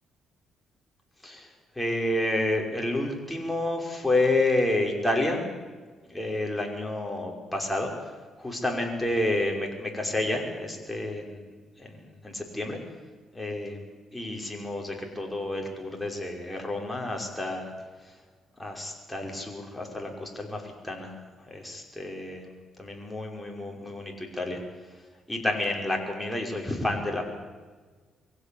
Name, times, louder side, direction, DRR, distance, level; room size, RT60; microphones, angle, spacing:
voice 1, 1.8-5.4 6.1-7.9 8.4-11.4 11.8-12.0 12.2-12.8 13.3-13.8 14.1-17.7 18.6-21.1 21.5-22.5 22.8-24.6 25.3-27.3, left 1 dB, 5° left, 1 dB, 5.5 m, -29 dB
23.0 x 16.5 x 8.7 m, 1.4 s
cardioid pair, 90°, 0 cm